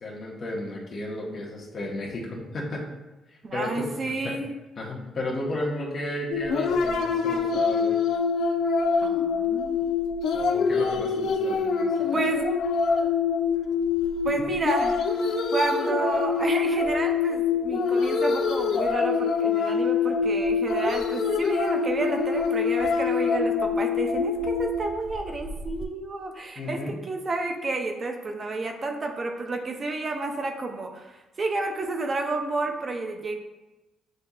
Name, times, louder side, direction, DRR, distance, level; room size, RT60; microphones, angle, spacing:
voice 1, 0.0-2.9 3.3-4.3 4.8-8.0 10.3-12.2 14.3-14.4 26.5-26.9, left 1 dB, 50° left, -3 dB, 1.2 m, -34 dB
voice 2, 3.4-4.5 9.0-9.8 12.1-12.4 14.2-15.0 15.5-26.8 27.1-33.3, right 2 dB, 40° right, 3 dB, 0.6 m, -30 dB
sound 1, 6.3-25.8, left 5 dB, 70° left, 0.4 m, -25 dB
7.8 x 2.7 x 2.4 m, 1.0 s
cardioid pair, 90°, 0 cm